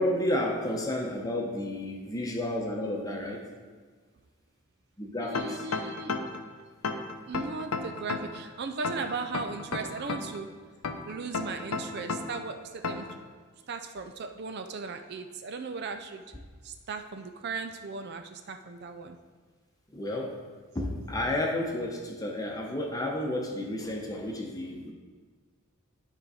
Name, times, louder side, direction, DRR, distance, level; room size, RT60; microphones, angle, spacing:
voice 1, 0.0-3.4 5.0-5.6 19.9-20.4 20.7-24.9, left 1 dB, 15° left, 0 dB, 0.9 m, -31 dB
voice 2, 5.2-6.2 7.2-10.5 11.1-13.3 13.7-16.2 16.6-19.2, right 4 dB, 50° right, 7 dB, 0.4 m, -37 dB
sound 1, 5.3-6.4 6.8-8.4 8.8-10.4 10.8-12.4 12.8-13.2, left 4 dB, 90° left, 0.6 m, -32 dB
11.0 x 3.9 x 4.9 m, 1.5 s
head